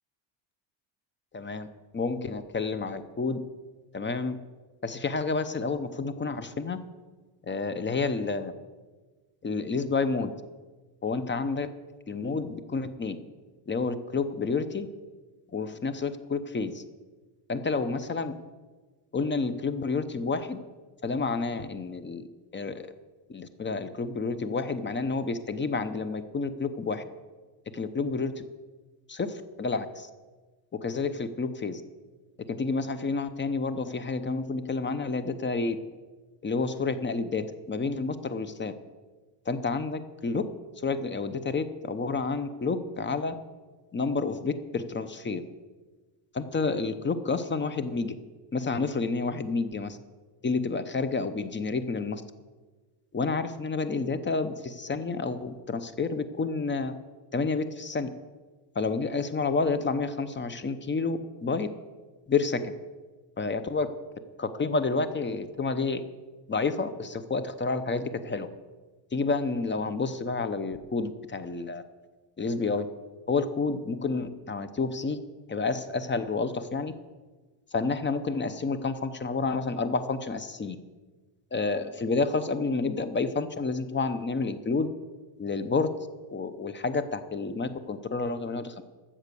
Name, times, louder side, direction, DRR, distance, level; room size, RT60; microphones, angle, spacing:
voice 1, 1.3-1.7 1.9-3.4 3.9-4.4 4.8-6.8 7.5-8.5 9.4-10.3 11.0-11.7 12.1-13.2 13.7-14.9 15.5-16.8 17.5-18.3 19.1-20.6 21.0-22.3 22.5-22.9 23.3-27.0 27.7-28.4 29.1-30.1 30.8-31.8 32.5-35.8 36.4-38.7 39.5-40.4 40.8-43.3 43.9-45.4 46.3-48.1 48.5-50.0 50.4-52.2 53.1-56.9 57.3-58.1 58.7-61.7 62.3-62.7 63.4-63.9 64.4-66.0 66.5-68.5 69.1-71.8 72.4-72.9 73.3-75.2 75.5-76.9 77.7-80.8 81.5-84.9 85.4-85.9 86.3-88.8, left 4 dB, 25° left, 12 dB, 0.8 m, -29 dB
13.0 x 7.4 x 6.9 m, 1.3 s
cardioid pair, 105°, 48 cm